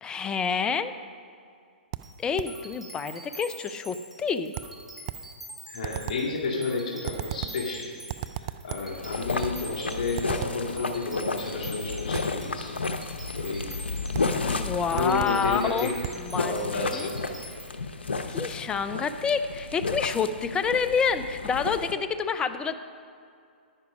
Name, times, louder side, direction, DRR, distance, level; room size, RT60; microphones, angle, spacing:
voice 1, 0.0-0.9 2.2-4.5 14.5-15.9 16.3-17.1 18.3-22.7, left 6 dB, 15° left, 11 dB, 0.5 m, -28 dB
sound 1, 1.9-2.6 4.5-5.3 5.8-6.3 7.0-7.7 8.1-9.0 9.4-9.7 10.2-10.7 12.1-12.4 14.1-14.4 15.0-15.5 16.0-16.3, right 14 dB, 40° right, 0.4 m, -36 dB
sound 2, 2.0-17.6, right 1 dB, 5° right, 1.8 m, -45 dB
voice 2, 5.7-7.9 8.4-12.7 13.4-13.7 14.9-16.1 16.4-17.2, left 3 dB, 55° left, -4 dB, 2.3 m, -31 dB
sound 3, 8.8-21.9, left 3 dB, 90° left, 0.8 m, -33 dB
9.9 x 9.6 x 5.1 m, 2.4 s
hypercardioid pair, 130°, 6 cm